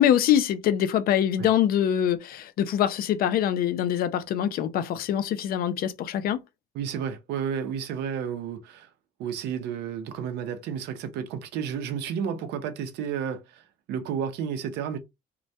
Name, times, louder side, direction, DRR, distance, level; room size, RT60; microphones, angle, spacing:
voice 1, 0.0-6.4, left 10 dB, 60° left, 0.4 m, -24 dB
voice 2, 6.7-8.9 9.2-15.0, right 7 dB, 80° right, 0.6 m, -32 dB
2.2 x 2.1 x 2.6 m
cardioid pair, 110°, 17 cm